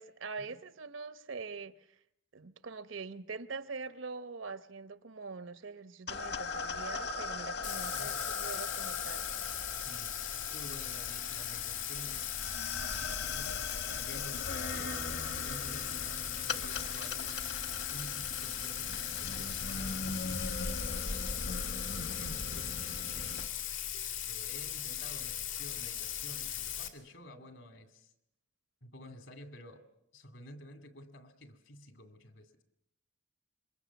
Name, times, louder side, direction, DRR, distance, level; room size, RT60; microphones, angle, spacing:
voice 1, 0.0-2.0 2.3-9.3, right 4 dB, 80° right, 0.9 m, -44 dB
sound 1, 6.1-23.5, left 3 dB, 55° left, 1.2 m, -40 dB
Bathtub (filling or washing), 7.6-26.9, left 10 dB, 85° left, 2.6 m, -38 dB
voice 2, 9.8-10.2 10.5-17.4 17.9-20.6 20.9-21.7 22.1-23.5 24.2-28.1 28.8-29.9 30.1-32.6, left 1 dB, 70° left, 2.5 m, -51 dB
27.0 x 22.5 x 7.1 m
head